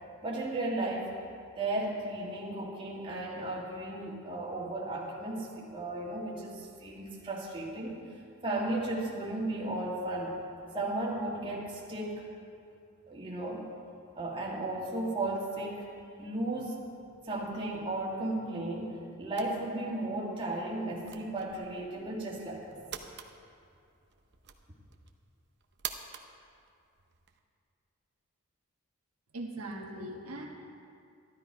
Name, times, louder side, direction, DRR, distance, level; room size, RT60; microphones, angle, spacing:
voice 1, 0.2-1.1 1.6-8.0 8.4-10.4 10.7-12.3 13.1-13.7 14.2-15.9 16.2-16.8 17.2-22.8, right 2 dB, 25° right, -4 dB, 1.9 m, -35 dB
sound 1, 19.3-27.4, right 8 dB, 50° right, 0.7 m, -47 dB
voice 2, 29.3-30.5, right 1 dB, 85° right, -1 dB, 1.4 m, -40 dB
12.5 x 12.0 x 4.7 m, 2.4 s
head